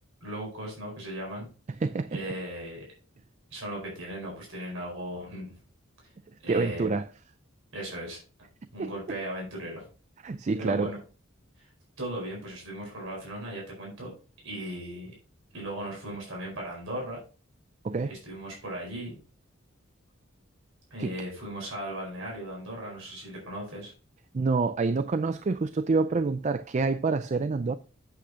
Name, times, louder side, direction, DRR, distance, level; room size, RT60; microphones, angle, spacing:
voice 1, 0.2-1.5 2.1-2.9 3.5-5.5 6.4-6.9 7.7-8.2 8.7-9.9 10.5-11.0 11.6-11.7 12.0-14.1 14.4-15.2 15.5-17.2 18.1-19.2 20.9-23.9, right 1 dB, 70° right, 4.6 m, -37 dB
voice 2, 1.8-2.2 6.5-7.1 8.8-8.9 10.2-10.9 17.8-18.1 21.0-21.1 24.3-27.8, right 4 dB, 35° right, 0.4 m, -27 dB
8.6 x 8.1 x 2.8 m
head